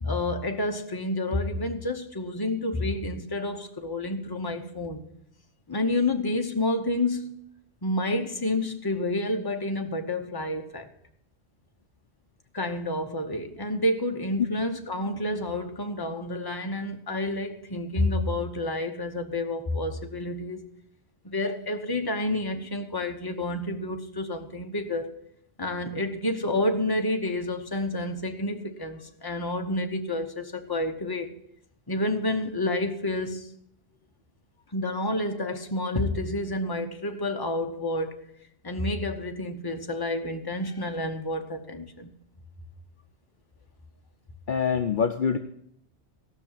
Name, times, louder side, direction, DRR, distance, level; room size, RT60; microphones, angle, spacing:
voice 1, 0.0-5.0 5.7-7.4 7.8-10.9 12.5-20.7 21.2-25.1 25.6-31.3 31.9-33.5 34.7-38.1 38.6-42.1, left 1 dB, 20° left, 5 dB, 1.0 m, -29 dB
voice 2, 44.5-45.4, left 6 dB, 55° left, 7 dB, 0.7 m, -25 dB
16.5 x 6.1 x 7.4 m, 0.73 s
omnidirectional pair, 1.1 m